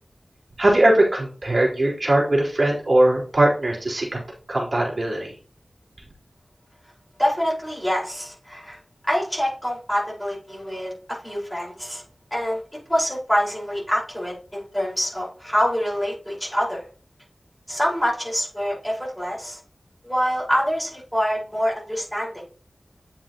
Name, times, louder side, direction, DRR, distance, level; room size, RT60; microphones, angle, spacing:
voice 1, 0.6-4.2 4.5-5.3, right 1 dB, 50° right, -3 dB, 4.1 m, -20 dB
voice 2, 7.2-10.9 11.2-12.0 12.3-12.6 12.9-16.9 17.7-19.6 20.0-22.4, equal, 5° left, -4 dB, 5.1 m, -25 dB
9.6 x 7.6 x 3.0 m, 0.40 s
wide cardioid pair, 55°, 0 cm